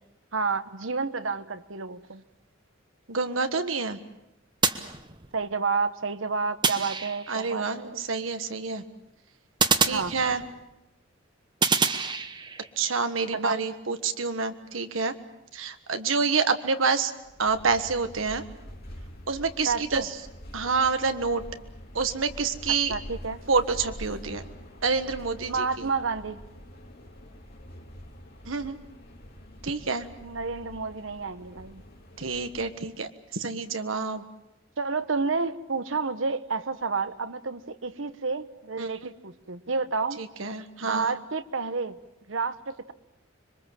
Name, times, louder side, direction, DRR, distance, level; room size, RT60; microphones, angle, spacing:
voice 1, 0.3-2.2 5.3-8.0 9.9-10.1 13.3-13.6 19.7-20.0 22.9-23.4 25.5-26.4 30.2-31.8 34.8-40.2 40.8-42.0 42.3-42.9, right 4 dB, 75° right, 12 dB, 1.0 m, -30 dB
voice 2, 3.1-4.0 7.3-8.8 9.8-10.4 12.8-15.1 15.5-17.1 17.4-18.4 19.3-20.2 20.5-21.4 21.9-22.9 23.5-24.4 24.8-25.9 28.4-28.8 29.6-30.1 32.2-34.2 38.8-39.1 40.2-41.1, right 4 dB, 90° right, 8 dB, 1.4 m, -28 dB
sound 1, 4.6-5.5 6.6-7.5 9.6-10.7 11.6-12.7, right 5 dB, 25° right, 1.0 m, -27 dB
sound 2, 17.2-33.0, equal, 55° left, 3.7 m, -45 dB
26.0 x 23.0 x 7.5 m, 0.92 s
head